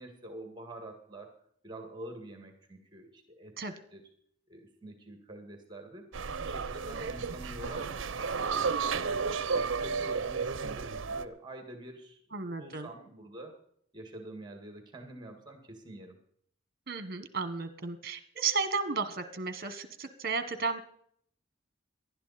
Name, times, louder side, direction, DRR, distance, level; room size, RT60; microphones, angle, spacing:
voice 1, 0.0-1.3 1.6-3.6 3.9-4.0 4.5-6.1 6.4-8.0 8.3-13.5 13.9-16.2, right 1 dB, 20° right, 4 dB, 2.0 m, -46 dB
radio in room, 6.1-11.3, right 5 dB, 70° right, 0.7 m, -32 dB
voice 2, 12.3-12.9 16.9-20.8, right 4 dB, 50° right, 11 dB, 1.4 m, -33 dB
18.5 x 12.0 x 4.2 m, 0.64 s
head